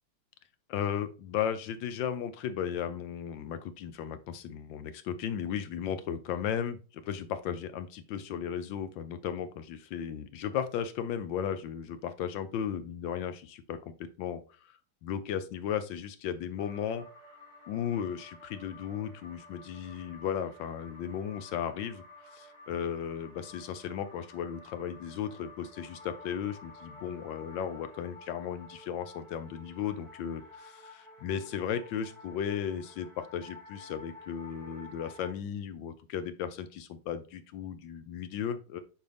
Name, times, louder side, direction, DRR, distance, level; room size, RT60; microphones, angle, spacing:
voice 1, 0.7-17.1 17.7-38.8, left 8 dB, 70° left, 12 dB, 1.2 m, -35 dB
sound 1, 16.6-35.3, left 2 dB, 15° left, 2.2 m, -52 dB
7.8 x 4.6 x 3.4 m, 0.35 s
omnidirectional pair, 2.4 m